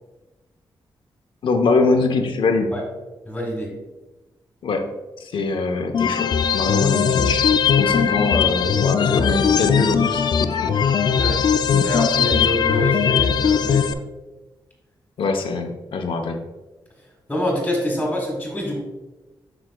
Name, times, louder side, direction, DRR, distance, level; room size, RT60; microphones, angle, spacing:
voice 1, 1.4-2.7 4.6-4.9 5.2-7.5 7.8-10.7 11.7-11.9 12.8-12.9 15.2-16.4, left 3 dB, 75° left, 5 dB, 0.8 m, -23 dB
voice 2, 3.2-3.7 7.8-8.0 11.1-11.4 11.8-13.9 17.3-18.8, equal, 5° left, -3 dB, 1.3 m, -26 dB
sound 1, 5.9-13.9, left 7 dB, 55° left, 0.3 m, -19 dB
7.9 x 6.1 x 2.2 m, 1.1 s
wide cardioid pair, 155°, 9 cm